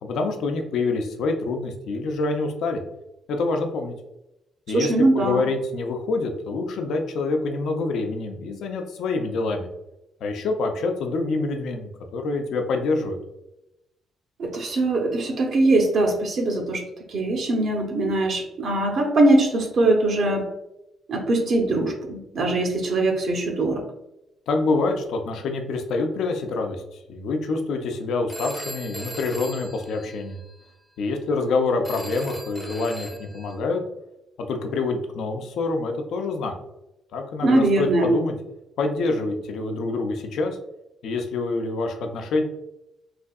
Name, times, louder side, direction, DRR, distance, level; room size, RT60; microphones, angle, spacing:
voice 1, 0.0-2.8 3.3-3.9 4.7-9.7 10.2-13.2 24.5-30.4 31.0-33.8 34.5-36.5 37.1-38.3 38.8-40.6 41.0-42.4, left 3 dB, 75° left, 4 dB, 0.4 m, -26 dB
voice 2, 4.7-5.4 14.4-20.4 21.1-23.8 37.4-38.1, right 2 dB, 60° right, 2 dB, 0.5 m, -21 dB
Telephone, 28.3-30.6 31.8-33.6, right 1 dB, 10° right, 0.5 m, -37 dB
3.3 x 2.6 x 2.3 m, 0.89 s
cardioid pair, 90°, 0 cm